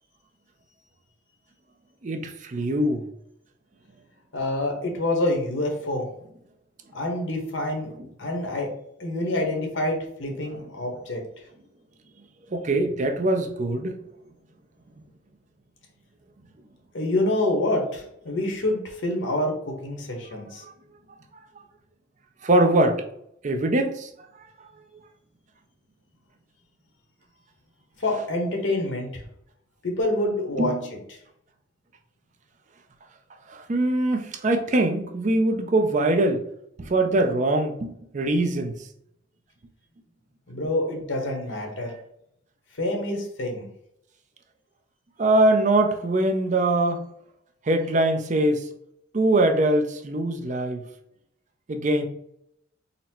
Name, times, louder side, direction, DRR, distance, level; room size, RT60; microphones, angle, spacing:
voice 1, 2.0-3.0 12.5-14.0 22.4-23.0 23.4-24.1 30.6-30.8 33.5-36.4 36.8-38.7 45.2-47.0 47.7-48.6 49.1-50.8 51.7-52.1, right 1 dB, 40° right, 0.5 m, -22 dB
voice 2, 4.3-6.1 6.9-7.9 8.2-8.7 9.0-11.2 16.9-20.6 28.0-29.2 29.8-30.7 31.1-31.2 40.5-41.9 42.8-43.7, left 1 dB, 90° left, 1.1 m, -27 dB
4.0 x 2.1 x 4.3 m
head